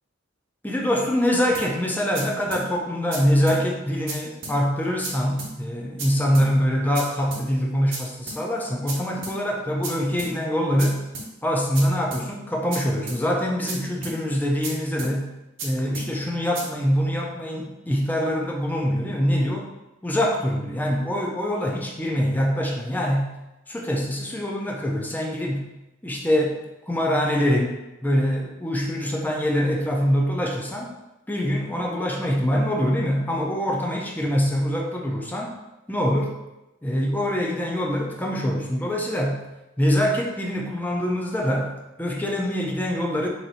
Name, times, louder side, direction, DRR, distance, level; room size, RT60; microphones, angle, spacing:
voice 1, 0.6-11.0 11.4-15.3 15.6-19.7 20.0-23.3 23.7-25.7 26.0-26.6 26.9-30.9 31.3-35.5 35.9-36.3 36.8-39.4 39.8-41.7 42.0-43.3, equal, 10° left, -1 dB, 0.5 m, -24 dB
sound 1, 1.5-1.7 2.1-2.2 2.5-2.6 3.1-3.2 3.5-3.6 4.1-4.2 4.4-4.6 5.0-5.1 5.4-5.5 6.0-6.1 6.3-6.5 6.9-7.0 7.3-7.4 7.9-8.0 8.3-8.4 8.9-9.0 9.2-9.4 9.8-9.9 10.2-10.3 10.8-10.9 11.1-11.3 11.7-11.8 12.1-12.2 12.7-12.8 13.1-13.2 13.7-13.8 14.0-14.2 14.6-14.7 15.0-15.1 15.6-15.7 15.9-16.1 16.5-16.6, right 3 dB, 85° right, 0.9 m, -33 dB
3.0 x 2.6 x 4.1 m, 0.99 s
head